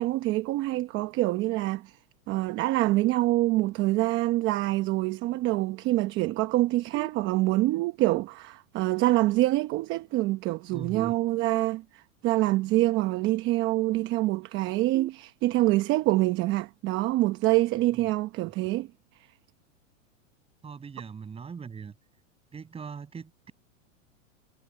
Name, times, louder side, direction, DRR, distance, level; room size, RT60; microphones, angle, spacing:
voice 1, 0.0-2.0 2.3-18.9, right 17 dB, 30° right, 0.9 m, -26 dB
sound 1, 6.9-7.9 10.9-11.9 14.9-15.9, right 12 dB, 75° right, 3.7 m, -46 dB
voice 2, 10.7-11.1 20.6-21.9 22.5-23.5, right 6 dB, 15° right, 6.4 m, -40 dB
supercardioid pair, 150°, 40 cm